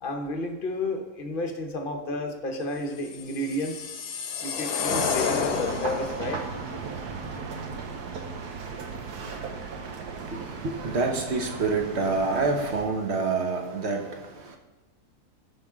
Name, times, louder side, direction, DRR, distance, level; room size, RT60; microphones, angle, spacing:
voice 1, 0.0-3.9 4.4-6.4, left 1 dB, 40° left, 4 dB, 1.0 m, -31 dB
sound 1, 3.1-6.3, left 6 dB, 75° left, 1.3 m, -30 dB
sound 2, 4.8-12.8, right 4 dB, 75° right, 1.5 m, -36 dB
voice 2, 10.1-14.6, right 3 dB, 45° right, 3 dB, 1.2 m, -27 dB
14.0 x 5.9 x 3.6 m, 1.1 s
omnidirectional pair, 1.7 m